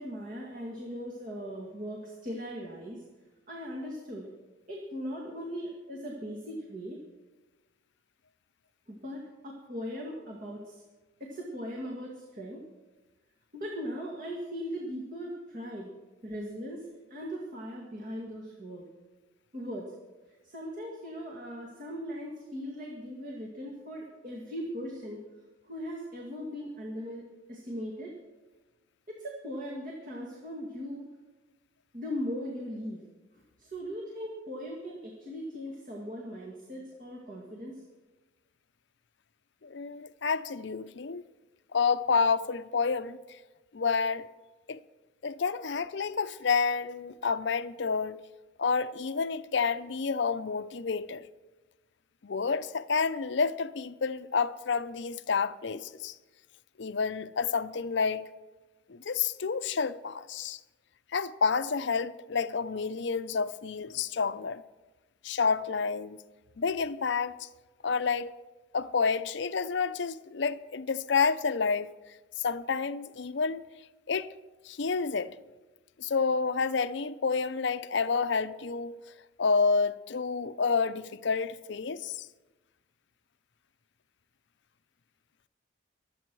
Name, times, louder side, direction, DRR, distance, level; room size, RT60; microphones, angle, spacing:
voice 1, 0.0-3.1 3.5-4.3 4.7-7.0 8.9-10.8 11.2-12.6 13.5-15.9 16.2-18.8 19.5-19.9 20.4-25.2 25.6-28.1 29.1-31.1 31.9-33.0 33.6-37.8, equal, 40° right, 2.1 m, -39 dB
voice 2, 39.6-41.2 41.7-43.4 43.7-44.3 44.7-44.8 45.2-48.2 48.6-51.2 52.2-56.2 56.8-58.3 58.9-60.6 61.1-64.6 65.2-66.2 66.6-67.5 67.8-68.3 68.7-73.6 74.1-74.3 74.6-75.4 76.0-79.0 79.4-82.3, left 5 dB, 60° left, 0.5 m, -29 dB
24.0 x 8.5 x 4.7 m
head